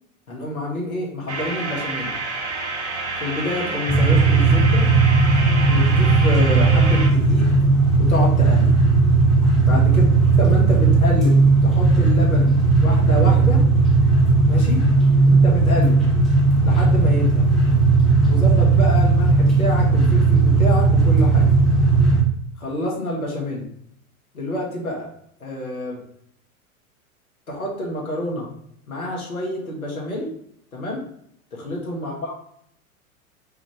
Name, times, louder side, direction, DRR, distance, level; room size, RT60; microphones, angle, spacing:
voice 1, 0.3-2.1 3.2-4.8 5.6-7.5 8.0-8.8 9.6-10.1 10.4-12.5 12.8-13.6 14.5-14.9 15.3-16.0 16.6-17.5 18.3-21.5 22.6-23.7 24.3-25.1 25.4-26.0 27.5-28.5 28.9-30.3 30.7-31.0 31.5-32.3, left 1 dB, 75° left, -2 dB, 1.5 m, -28 dB
sound 1, 1.3-7.1, right 3 dB, 50° right, 1.1 m, -28 dB
sound 2, 3.9-22.2, right 3 dB, ahead, 0.6 m, -16 dB
5.2 x 2.4 x 3.4 m, 0.69 s
figure-of-eight pair, 95°, 43 cm